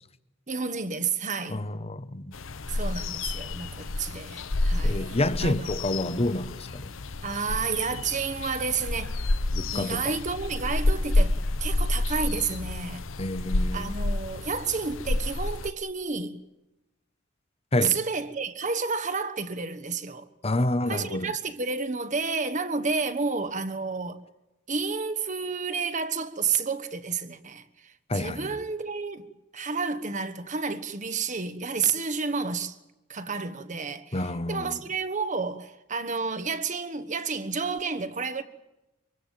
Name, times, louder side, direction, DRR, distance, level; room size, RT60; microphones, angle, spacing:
voice 1, 0.5-1.6 2.7-5.8 7.2-9.2 9.7-13.0 13.7-16.4 17.8-20.3 20.9-24.2 24.7-29.3 29.5-32.8 33.1-38.4, right 5 dB, 40° right, 1.3 m, -30 dB
voice 2, 1.5-2.3 4.8-6.9 9.5-10.2 13.2-13.9 17.7-17.9 20.4-21.3 28.1-28.5 34.1-34.8, left 1 dB, 30° left, 1.0 m, -28 dB
sound 1, 2.3-15.7, left 2 dB, 85° left, 0.9 m, -29 dB
24.5 x 24.0 x 7.5 m
head